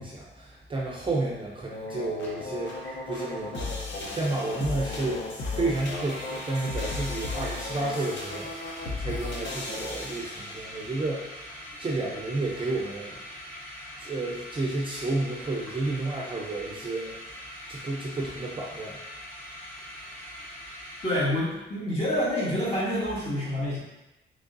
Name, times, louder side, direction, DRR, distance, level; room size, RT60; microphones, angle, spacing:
voice 1, 0.0-13.2 14.0-17.1 17.7-19.0, right 2 dB, 25° right, -3 dB, 0.5 m, -31 dB
sound 1, 1.5-1.6 1.9-3.6 3.9-4.0 4.2-4.5 4.7-4.8 5.2-5.3 5.5-21.2, equal, 10° left, 1.1 m, -43 dB
sound 2, 1.7-10.9, left 3 dB, 70° left, 0.7 m, -35 dB
voice 2, 21.0-23.8, left 1 dB, 30° left, -7 dB, 1.5 m, -27 dB
3.5 x 3.2 x 2.6 m, 0.96 s
cardioid pair, 110°, 20 cm